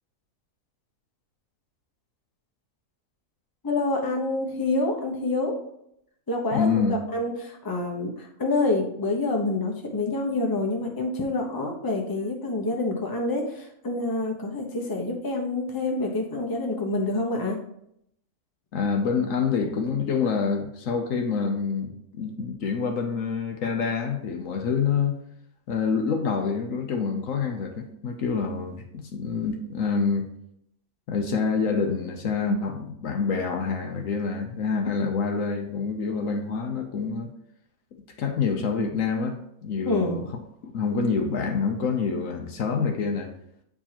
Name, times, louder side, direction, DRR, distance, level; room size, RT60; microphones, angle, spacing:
voice 1, 3.6-5.6 6.3-17.6 39.8-40.2, left 2 dB, 15° left, 1 dB, 0.9 m, -27 dB
voice 2, 6.5-6.9 18.7-25.2 25.7-30.3 31.1-37.3 38.2-40.2 40.6-43.3, left 5 dB, 70° left, 4 dB, 1.1 m, -27 dB
8.6 x 4.6 x 2.9 m, 0.73 s
omnidirectional pair, 1.5 m